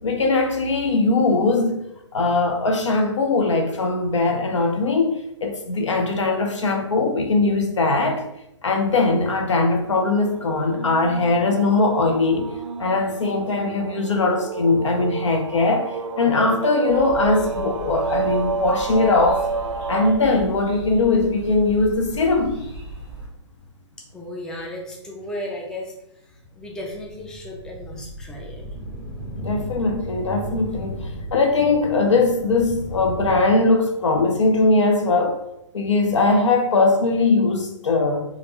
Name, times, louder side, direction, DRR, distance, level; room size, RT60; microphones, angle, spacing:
voice 1, 0.0-1.8 2.1-8.3 8.6-12.5 12.8-19.5 19.9-22.6 29.4-35.4 35.7-38.3, left 3 dB, 80° left, 3 dB, 0.6 m, -20 dB
sound 1, 9.8-20.1, right 4 dB, 90° right, 0.4 m, -30 dB
sound 2, 16.9-23.3, right 2 dB, 35° left, 1.1 m, -38 dB
voice 2, 24.1-25.9 26.6-28.6, left 1 dB, 5° left, -1 dB, 0.4 m, -34 dB
sound 3, 26.6-33.4, equal, 55° left, 1.3 m, -35 dB
3.1 x 2.5 x 3.0 m, 0.82 s
hypercardioid pair, 130°, 15 cm